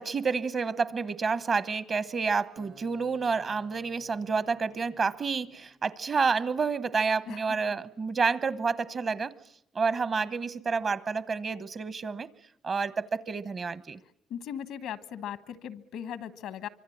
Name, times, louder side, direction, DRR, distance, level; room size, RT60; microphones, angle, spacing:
voice 1, 0.0-9.3 9.7-12.3 12.6-14.0, right 5 dB, 45° right, 1.1 m, -29 dB
Acoustic guitar, 2.6-5.8, right 4 dB, 75° right, 2.0 m, -56 dB
voice 2, 14.3-16.7, left 9 dB, 90° left, 1.2 m, -38 dB
25.0 x 24.0 x 8.6 m
cardioid pair, 90°, 0 cm